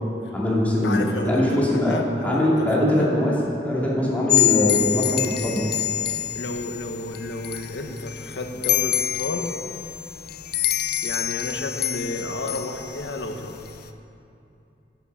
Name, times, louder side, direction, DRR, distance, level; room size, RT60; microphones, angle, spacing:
voice 1, 0.3-3.3 3.6-5.7, left 1 dB, 10° left, -6 dB, 2.4 m, -22 dB
voice 2, 0.8-3.2 6.3-9.6 11.0-13.6, left 2 dB, 85° left, 4 dB, 1.0 m, -31 dB
sound 1, 4.3-13.9, left 13 dB, 60° left, 0.6 m, -26 dB
11.0 x 7.1 x 7.2 m, 2.7 s
head